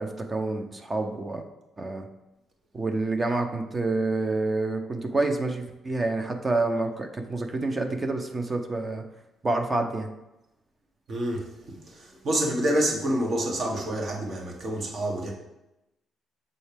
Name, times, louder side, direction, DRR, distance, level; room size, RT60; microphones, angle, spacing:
voice 1, 0.0-1.4 1.8-2.1 2.7-9.0 9.4-10.1, right 2 dB, 30° right, 5 dB, 0.7 m, -28 dB
voice 2, 11.1-15.3, right 1 dB, 55° right, 0 dB, 1.6 m, -28 dB
6.5 x 4.2 x 3.4 m, 0.93 s
cardioid pair, 90°, 0 cm